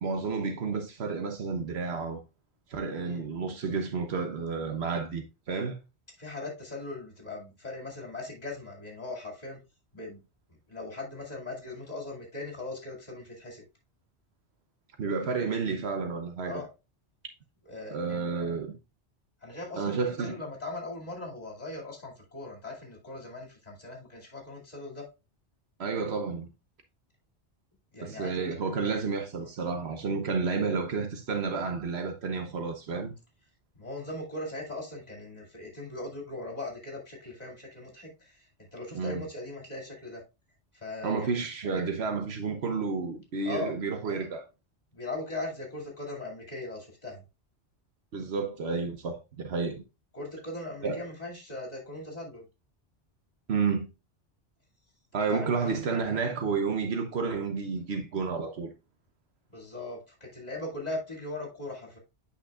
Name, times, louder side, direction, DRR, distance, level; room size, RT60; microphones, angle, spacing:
voice 1, 0.0-2.2 2.7-5.7 15.0-16.6 17.9-18.8 19.8-20.4 25.8-26.5 28.0-33.1 38.9-39.3 41.0-44.5 48.1-49.8 50.8-51.0 53.5-53.9 55.1-58.7, right 5 dB, 70° right, 1.1 m, -31 dB
voice 2, 6.2-9.6 9.9-10.2 10.7-13.6 16.4-16.7 17.6-18.3 19.4-25.1 27.9-29.0 33.8-40.2 40.8-41.3 43.4-43.8 44.9-47.2 50.1-52.4 55.3-55.7 59.5-62.0, left 2 dB, 35° left, 2.4 m, -39 dB
8.7 x 5.6 x 2.4 m
omnidirectional pair, 1.1 m